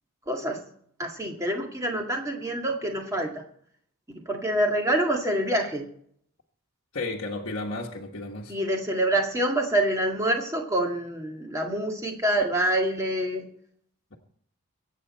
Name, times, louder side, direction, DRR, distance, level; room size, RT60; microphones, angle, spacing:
voice 1, 0.3-0.6 1.0-3.4 4.3-5.9 8.5-13.5, right 1 dB, 15° right, 1 dB, 2.0 m, -26 dB
voice 2, 6.9-8.5, left 2 dB, 55° left, -2 dB, 1.5 m, -33 dB
23.5 x 8.4 x 4.3 m, 0.62 s
head